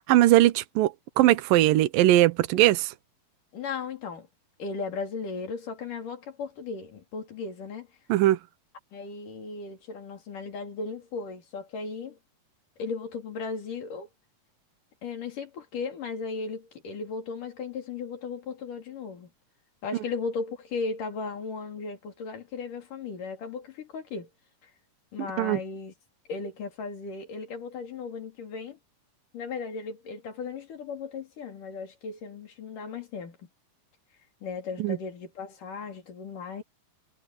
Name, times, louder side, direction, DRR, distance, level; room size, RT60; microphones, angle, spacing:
voice 1, 0.1-2.9 8.1-8.4 25.4-25.6 34.8-35.0, right 15 dB, 70° right, 2.5 m, -20 dB
voice 2, 3.5-4.3 4.6-7.9 8.9-12.2 12.8-14.1 15.0-19.3 19.8-24.3 24.6-24.7 25.1-25.9 26.3-28.8 29.3-33.5 34.4-36.6, left 4 dB, 55° left, 5.0 m, -36 dB
omnidirectional pair, 4.5 m